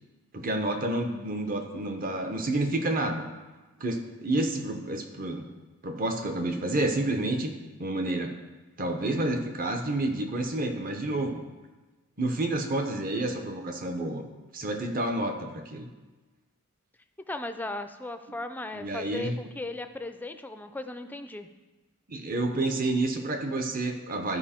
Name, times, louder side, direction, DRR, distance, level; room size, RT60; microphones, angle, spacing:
voice 1, 0.3-3.2 3.8-5.4 5.8-7.5 7.8-8.3 8.8-11.4 12.2-14.2 14.5-15.9 18.7-19.4 22.1-24.4, right 2 dB, 40° right, 5 dB, 0.9 m, -29 dB
voice 2, 17.3-21.5, left 2 dB, 10° left, 8 dB, 0.4 m, -37 dB
12.5 x 4.9 x 4.4 m, 1.2 s
head